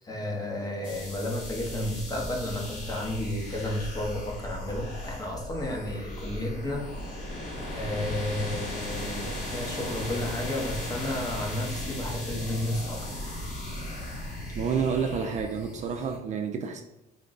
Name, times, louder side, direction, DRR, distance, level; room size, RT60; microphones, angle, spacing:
voice 1, 0.0-6.9 7.7-13.3, left 1 dB, 20° left, 1 dB, 0.9 m, -32 dB
sound 1, 0.8-16.2, left 1 dB, 50° left, 1.1 m, -37 dB
voice 2, 14.5-16.8, right 6 dB, 45° right, 4 dB, 0.4 m, -29 dB
3.9 x 2.2 x 3.9 m, 0.89 s
cardioid pair, 110°, 17 cm